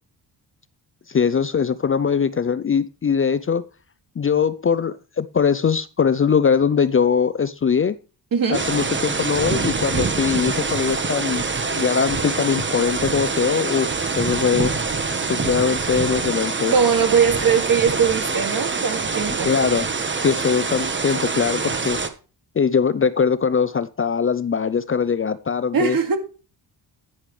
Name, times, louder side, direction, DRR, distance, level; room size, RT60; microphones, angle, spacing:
voice 1, 1.1-3.6 4.2-8.0 8.5-11.4 11.7-14.7 15.2-16.7 19.4-19.9 20.2-22.0 22.6-26.0, left 6 dB, 30° left, 0.5 m, -21 dB
voice 2, 8.3-8.6 16.7-19.5 25.7-26.2, right 6 dB, 55° right, 2.2 m, -20 dB
sound 1, 8.5-22.1, right 4 dB, 25° right, 1.2 m, -25 dB
11.0 x 10.0 x 3.2 m
wide cardioid pair, 120°, 41 cm